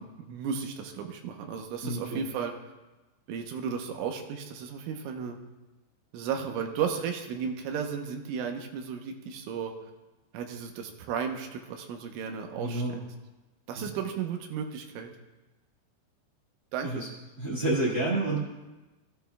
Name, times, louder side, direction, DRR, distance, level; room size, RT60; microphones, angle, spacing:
voice 1, 0.0-2.5 3.3-5.4 6.1-9.7 10.3-13.0 13.7-15.1 16.7-17.0, right 7 dB, 85° right, 4 dB, 3.3 m, -34 dB
voice 2, 1.8-2.2 12.6-13.0 13.8-13.9 16.8-17.1 17.4-18.4, right 2 dB, 65° right, -5 dB, 1.2 m, -29 dB
18.5 x 14.0 x 2.3 m, 1.1 s
omnidirectional pair, 5.6 m